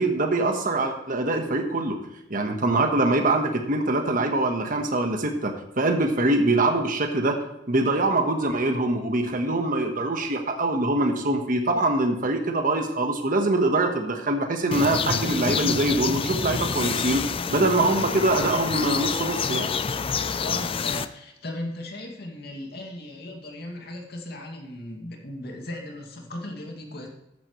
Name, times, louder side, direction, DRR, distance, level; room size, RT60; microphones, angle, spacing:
voice 1, 0.0-2.0 2.3-7.4 7.7-17.2 17.5-19.7, right 2 dB, 45° right, 4 dB, 1.3 m, -23 dB
sound 1, 14.7-21.1, left 5 dB, 30° left, 0.4 m, -27 dB
voice 2, 20.4-27.1, left 1 dB, 55° left, 1 dB, 2.3 m, -37 dB
13.5 x 10.0 x 3.2 m, 0.90 s
head